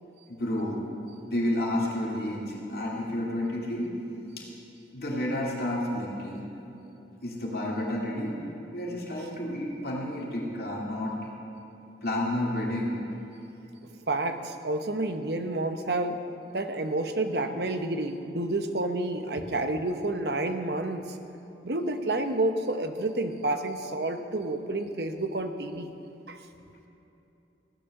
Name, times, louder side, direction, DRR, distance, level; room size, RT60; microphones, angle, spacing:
voice 1, 0.3-0.8 1.3-3.9 4.4-4.5 4.9-6.4 7.2-8.4 8.7-11.3 12.0-13.0, left 1 dB, 60° left, -3 dB, 2.4 m, -30 dB
voice 2, 14.1-16.2 16.5-21.2 21.6-25.9 26.3-26.4, right 2 dB, 65° right, 7 dB, 0.9 m, -29 dB
16.0 x 10.5 x 6.5 m, 2.9 s
head